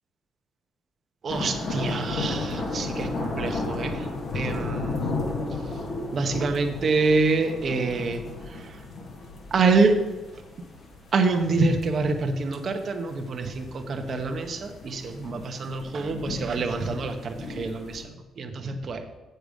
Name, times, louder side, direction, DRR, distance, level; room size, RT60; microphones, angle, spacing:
voice 1, 1.2-4.1 4.3-5.0 6.1-8.2 8.5-8.8 9.5-10.0 11.1-19.0, right 3 dB, 50° right, 5 dB, 1.1 m, -26 dB
sound 1, 1.3-18.0, left 3 dB, 55° left, 1.9 m, -34 dB
8.1 x 6.7 x 5.1 m, 1.1 s
cardioid pair, 90°, 0 cm